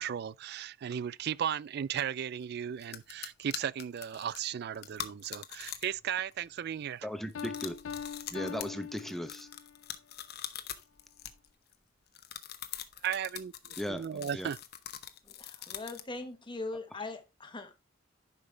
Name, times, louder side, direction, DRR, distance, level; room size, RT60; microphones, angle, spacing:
voice 1, 0.0-7.1 13.0-14.6, right 9 dB, 55° right, 0.3 m, -36 dB
sound 1, 2.4-2.5 2.8-6.0 6.3-6.7 7.3-11.7 12.1-16.2, left 10 dB, 55° left, 0.9 m, -43 dB
voice 2, 7.0-7.7 8.3-9.5 13.8-14.5, equal, ahead, 0.8 m, -37 dB
Piano, 7.3-9.8, left 7 dB, 75° left, 0.4 m, -42 dB
voice 3, 15.3-17.8, left 2 dB, 25° left, 1.2 m, -41 dB
10.5 x 5.4 x 3.3 m
head